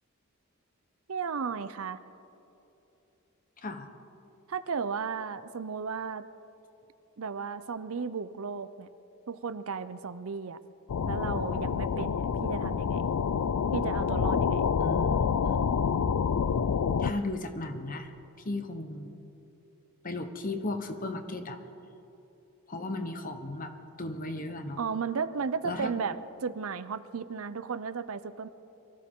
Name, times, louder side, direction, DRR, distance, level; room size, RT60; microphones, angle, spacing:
voice 1, 1.1-2.0 4.5-6.3 7.2-8.9 9.3-10.6 11.1-13.0 13.7-14.6 24.8-28.5, right 5 dB, 70° right, 13 dB, 0.6 m, -34 dB
sound 1, 10.9-17.1, left 6 dB, 85° left, 0.4 m, -27 dB
voice 2, 14.8-15.9 17.0-18.1 18.4-19.1 20.0-21.6 22.7-23.7 24.0-24.8 25.6-25.9, left 2 dB, 40° left, 7 dB, 1.1 m, -35 dB
23.5 x 14.5 x 3.7 m, 3.0 s
head